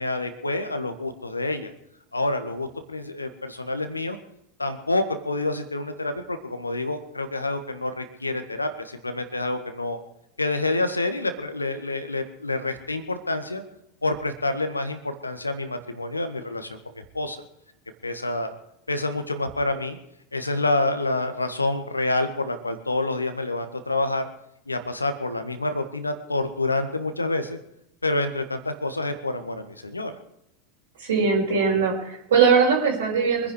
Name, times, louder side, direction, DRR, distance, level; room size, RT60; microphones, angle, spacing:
voice 1, 0.0-1.7 2.1-4.2 4.6-10.0 10.4-13.6 14.0-17.4 18.0-18.5 18.9-20.0 20.3-24.3 24.7-27.6 28.0-30.1, left 2 dB, 85° left, 8 dB, 1.7 m, -28 dB
voice 2, 31.0-33.5, right 5 dB, 65° right, -1 dB, 4.7 m, -20 dB
24.5 x 10.5 x 4.7 m, 0.77 s
figure-of-eight pair, 85°, 0 cm